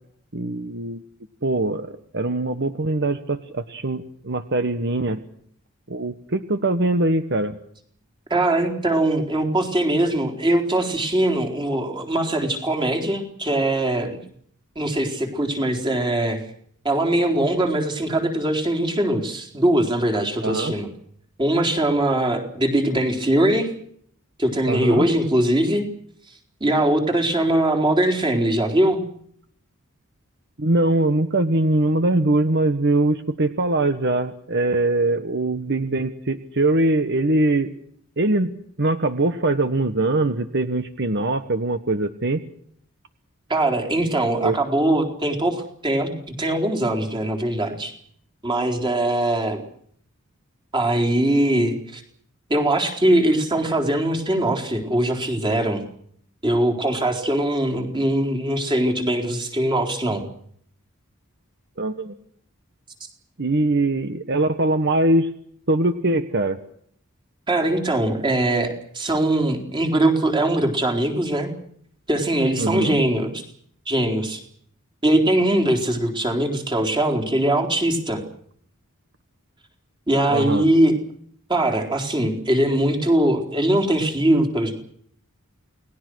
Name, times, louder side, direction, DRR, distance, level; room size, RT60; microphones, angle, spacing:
voice 1, 0.3-1.0 1.4-5.2 5.9-7.6 20.4-20.7 24.6-25.1 30.6-37.7 38.2-38.5 38.8-42.4 44.4-44.6 61.8-62.1 63.4-65.3 65.7-66.6 72.6-73.0 80.3-80.6, right 2 dB, 55° right, 9 dB, 1.4 m, -22 dB
voice 2, 8.3-14.2 14.8-16.4 16.8-20.9 21.4-23.7 24.4-25.9 26.6-29.0 43.5-47.9 48.4-49.6 50.7-52.0 52.5-55.8 56.4-60.3 67.5-71.5 72.1-73.3 73.9-74.4 75.0-78.2 80.1-81.0 81.5-84.7, right 1 dB, 20° right, 2 dB, 4.1 m, -21 dB
29.0 x 19.5 x 6.4 m, 0.65 s
head